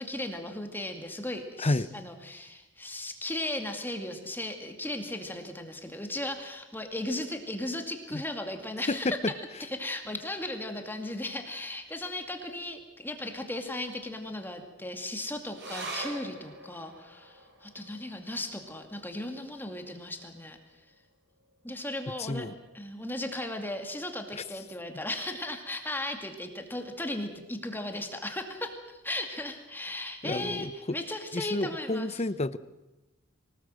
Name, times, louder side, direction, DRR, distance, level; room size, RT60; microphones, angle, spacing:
voice 1, 0.0-9.2 9.6-20.6 21.6-22.5 22.7-32.2, left 1 dB, 10° left, 4 dB, 2.3 m, -36 dB
voice 2, 1.6-1.9 8.1-8.2 8.9-9.3 22.2-22.5 24.4-24.5 30.2-31.0 31.3-32.6, left 2 dB, 30° left, 15 dB, 0.8 m, -30 dB
sound 1, 15.5-22.3 22.6-22.7 23.1-23.7 24.3-24.4, right 2 dB, 55° right, 5.5 m, -46 dB
24.5 x 19.0 x 7.8 m, 1.0 s
head